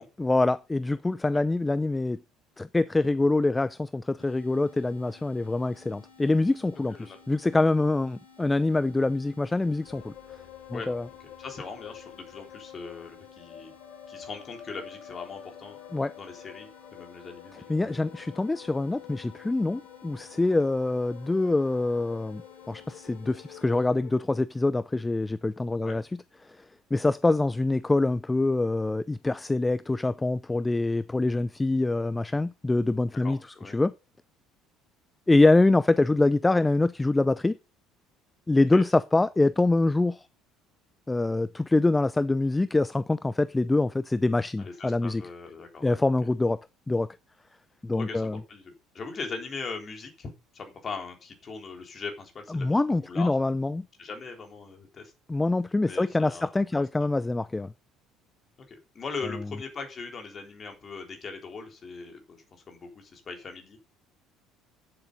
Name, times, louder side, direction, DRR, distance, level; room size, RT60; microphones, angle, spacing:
voice 1, 0.2-2.2 2.6-10.1 10.7-11.0 15.9-16.1 17.7-26.0 26.9-33.4 33.7-33.9 35.3-37.6 38.5-40.3 41.1-45.2 45.8-46.6 46.9-47.1 47.8-48.4 52.5-53.8 55.3-57.7, left 2 dB, 15° left, 0.5 m, -25 dB
sound 1, 4.2-23.9, left 5 dB, 80° left, 3.1 m, -55 dB
sound 2, 9.8-24.3, left 10 dB, 55° left, 1.5 m, -48 dB
voice 2, 10.7-13.7 14.1-15.8 16.2-18.0 25.8-26.0 33.2-33.8 38.7-38.8 44.6-46.0 47.9-53.4 54.0-55.1 55.9-56.8 58.7-63.8, left 4 dB, 35° left, 3.7 m, -40 dB
9.7 x 8.1 x 5.3 m
figure-of-eight pair, 60°, 0 cm